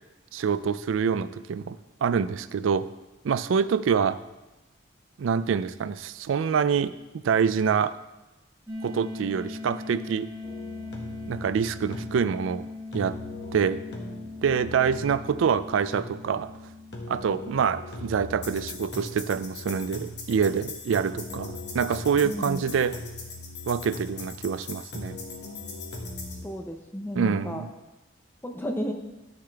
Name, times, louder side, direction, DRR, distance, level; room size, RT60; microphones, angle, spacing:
voice 1, 0.3-2.9 3.2-4.2 5.2-6.9 7.2-7.9 8.8-10.3 11.3-12.7 12.9-13.2 13.5-13.8 14.4-16.5 17.1-23.0 23.7-25.2 27.2-27.7, right 6 dB, 90° right, 15 dB, 0.4 m, -26 dB
sound 1, 8.7-19.4, left 2 dB, 15° right, 1.7 m, -41 dB
sound 2, 10.4-26.4, left 2 dB, 60° left, 1.5 m, -40 dB
voice 2, 22.2-22.6 26.4-27.6 28.4-28.9, equal, 10° left, 4 dB, 0.7 m, -32 dB
11.0 x 6.7 x 3.4 m, 1.0 s
head